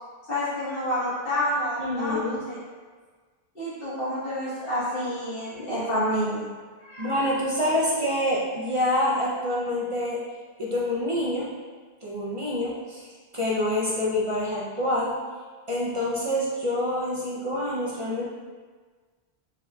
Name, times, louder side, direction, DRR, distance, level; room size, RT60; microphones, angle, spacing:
voice 1, 0.3-2.6 3.5-6.4 6.8-7.4, equal, 55° left, -11 dB, 1.4 m, -29 dB
voice 2, 1.8-2.4 7.0-10.2 10.6-11.5 12.0-13.1 13.3-15.1 15.7-18.3, left 1 dB, 40° right, -6 dB, 0.5 m, -26 dB
4.4 x 3.9 x 2.3 m, 1.5 s
omnidirectional pair, 1.1 m